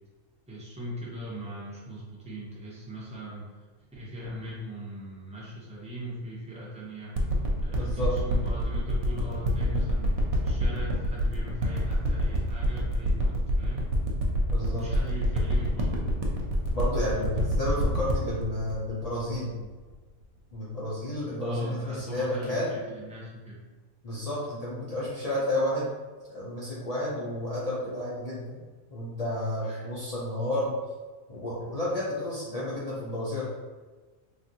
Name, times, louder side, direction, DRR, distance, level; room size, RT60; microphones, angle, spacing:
voice 1, 0.5-3.5 4.0-10.1 10.4-13.9 14.5-16.0 17.1-17.5 21.4-23.6 29.6-29.8, left 1 dB, 10° right, -7 dB, 0.3 m, -39 dB
sound 1, 7.2-19.9 20.5-20.6, equal, 85° right, 1.1 m, -26 dB
voice 2, 7.8-8.2 14.5-14.8 16.7-19.6 20.5-22.8 24.0-25.9 26.2-28.6 28.9-30.8 31.3-33.4, left 1 dB, 75° left, -8 dB, 0.3 m, -31 dB
3.2 x 2.4 x 2.7 m, 1.3 s
omnidirectional pair, 1.5 m